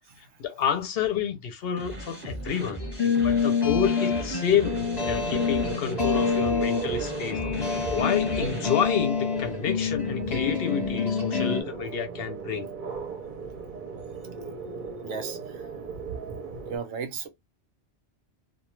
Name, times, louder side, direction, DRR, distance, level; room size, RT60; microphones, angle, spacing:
voice 1, 0.4-4.8 5.0-7.4 7.9-12.7, left 8 dB, 65° left, 0.7 m, -29 dB
sound 1, 1.8-8.7, right 1 dB, 10° right, 0.8 m, -37 dB
sound 2, 2.8-11.6, left 6 dB, 25° left, 0.7 m, -27 dB
sound 3, 4.6-16.8, right 5 dB, 55° right, 0.7 m, -37 dB
voice 2, 15.0-15.6 16.7-17.3, right 6 dB, 85° right, 0.9 m, -34 dB
2.2 x 2.2 x 3.0 m
omnidirectional pair, 1.2 m